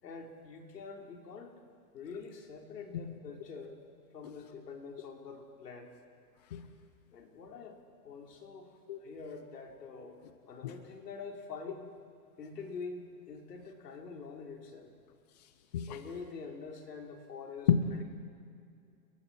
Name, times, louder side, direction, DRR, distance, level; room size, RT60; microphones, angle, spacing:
voice 1, 0.0-1.6 1.9-3.8 4.1-5.9 7.1-7.8 8.0-8.7 9.0-10.2 10.5-11.9 12.4-14.9 15.8-18.0, left 5 dB, 75° left, 1 dB, 4.5 m, -45 dB
voice 2, 3.1-3.2 6.5-6.7 8.9-9.0 10.6-10.7 15.7-16.0 17.7-17.8, left 8 dB, 25° left, 8 dB, 0.7 m, -29 dB
29.5 x 22.5 x 4.6 m, 2.4 s
hypercardioid pair, 175°, 48 cm